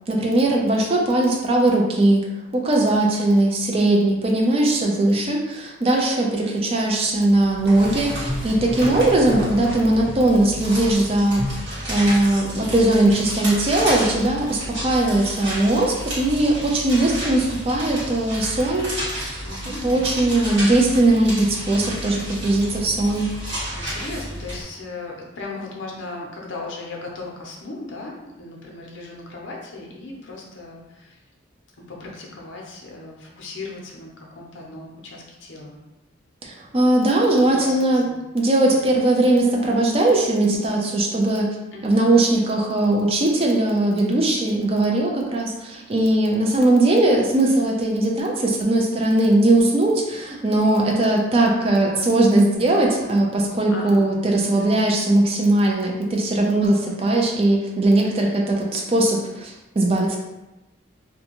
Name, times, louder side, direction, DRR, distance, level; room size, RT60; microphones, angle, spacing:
voice 1, 0.0-2.2 2.5-11.4 11.9-18.9 19.8-23.3 36.4-38.1 38.3-41.5 41.8-60.2, right 2 dB, 30° right, -1 dB, 0.4 m, -19 dB
sound 1, 7.3-24.6, equal, 65° right, 1.2 m, -30 dB
voice 2, 19.4-20.1 23.7-31.2 31.9-35.8 37.4-38.0 38.7-38.8 41.7-42.0 53.7-54.1 54.6-54.9, left 2 dB, 70° left, -1 dB, 0.6 m, -37 dB
2.5 x 2.3 x 2.9 m, 0.99 s
head